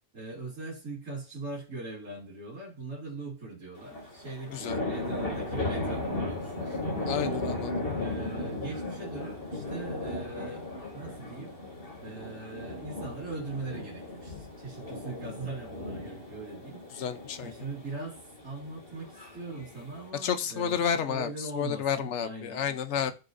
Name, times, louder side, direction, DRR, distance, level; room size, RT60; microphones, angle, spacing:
voice 1, 0.1-7.4 8.0-10.7 10.9-11.6 12.0-16.8 17.4-20.8 21.1-22.6 23.0-23.1, right 3 dB, 85° right, -4 dB, 3.2 m, -41 dB
sound 1, 3.8-20.1, left 2 dB, 45° left, 2.8 m, -36 dB
voice 2, 4.5-4.8 7.1-7.7 16.9-17.5 20.1-23.1, left 8 dB, 65° left, 10 dB, 1.1 m, -31 dB
14.5 x 6.5 x 2.7 m, 0.33 s
omnidirectional pair, 1.3 m